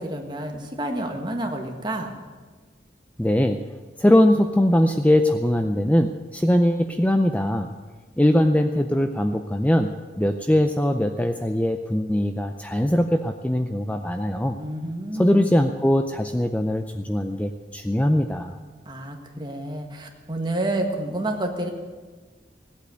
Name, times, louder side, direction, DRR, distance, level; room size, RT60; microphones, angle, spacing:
voice 1, 0.0-2.1 14.6-15.5 18.8-21.7, right 1 dB, 25° right, 3 dB, 1.7 m, -29 dB
voice 2, 3.2-3.6 4.0-7.7 8.2-14.6 15.1-18.5, left 1 dB, 10° left, 6 dB, 0.5 m, -21 dB
17.0 x 8.4 x 9.3 m, 1.4 s
head